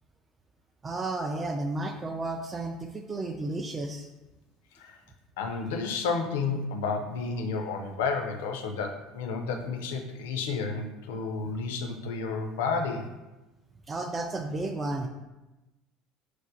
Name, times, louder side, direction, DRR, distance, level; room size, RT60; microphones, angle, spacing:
voice 1, 0.8-4.1 11.5-11.6 13.9-15.1, right 2 dB, 25° right, 3 dB, 0.3 m, -32 dB
voice 2, 5.4-13.1, left 4 dB, 70° left, 4 dB, 0.4 m, -31 dB
6.0 x 2.1 x 2.6 m, 1.0 s
figure-of-eight pair, 65°, 0 cm